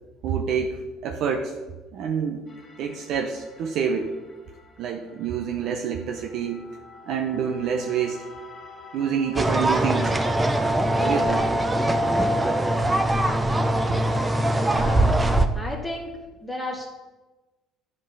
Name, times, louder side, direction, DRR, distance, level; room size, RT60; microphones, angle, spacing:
voice 1, 0.2-1.5 1.9-2.4 2.8-4.1 4.8-6.7 7.1-8.2 8.9-10.2 11.0-11.4, right 7 dB, 65° right, 3 dB, 0.8 m, -27 dB
sound 1, 2.5-10.7, left 4 dB, 30° left, 1.9 m, -47 dB
sound 2, 9.4-15.5, right 1 dB, 15° right, 0.7 m, -22 dB
voice 2, 14.6-15.2 15.5-16.1 16.4-16.9, left 1 dB, 5° left, -2 dB, 1.4 m, -32 dB
8.5 x 5.5 x 5.5 m, 1.2 s
supercardioid pair, 90°, 0 cm